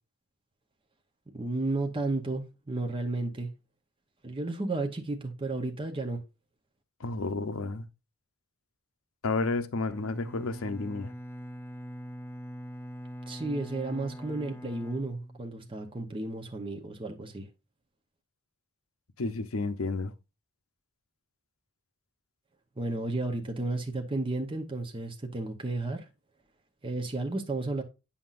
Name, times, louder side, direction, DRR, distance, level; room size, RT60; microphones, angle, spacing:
voice 1, 1.3-3.5 4.2-6.2 13.3-17.5 22.8-26.1 26.8-27.8, right 2 dB, 25° right, 0.8 m, -33 dB
voice 2, 7.0-7.9 9.2-11.1 19.2-20.1, left 3 dB, 75° left, 0.7 m, -31 dB
Bowed string instrument, 9.9-15.9, equal, 10° left, 0.4 m, -43 dB
8.6 x 5.7 x 2.5 m
head